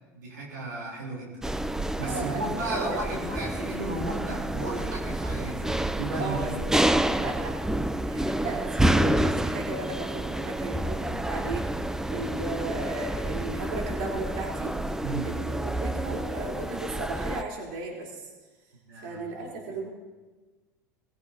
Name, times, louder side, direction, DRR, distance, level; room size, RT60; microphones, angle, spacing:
voice 1, 0.1-1.4 2.0-5.6 6.0-6.6 15.0-15.3 18.9-19.5, right 2 dB, 85° right, -2 dB, 3.7 m, -34 dB
sound 1, 1.4-17.4, right 1 dB, 5° right, 0.6 m, -29 dB
voice 2, 2.1-2.9 6.2-6.5 7.2-7.3 8.1-11.7 12.1-14.7 15.2-18.3 19.0-19.9, right 3 dB, 65° right, -2 dB, 3.8 m, -35 dB
20.5 x 16.0 x 2.8 m, 1.3 s
hypercardioid pair, 90°, 10 cm